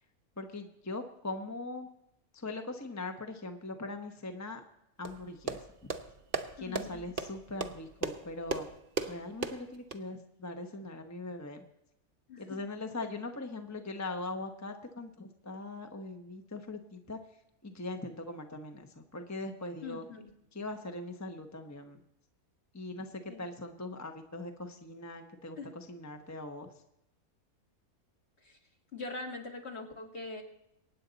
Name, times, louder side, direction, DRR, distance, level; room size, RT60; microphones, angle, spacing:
voice 1, 0.4-1.9 2.4-4.6 5.0-5.6 6.6-8.7 9.0-11.6 12.4-17.2 17.6-20.0 20.5-22.0 22.7-23.1 23.4-26.7, left 2 dB, 15° left, 5 dB, 0.8 m, -41 dB
sound 1, 5.0-10.0, right 4 dB, 45° right, 0.9 m, -37 dB
voice 2, 6.6-7.0 12.3-12.6 19.8-20.3 23.3-23.5 25.6-25.7 28.4-28.6 28.9-30.4, left 3 dB, 45° left, 1 dB, 2.3 m, -42 dB
23.5 x 9.5 x 4.0 m, 0.84 s
omnidirectional pair, 1.5 m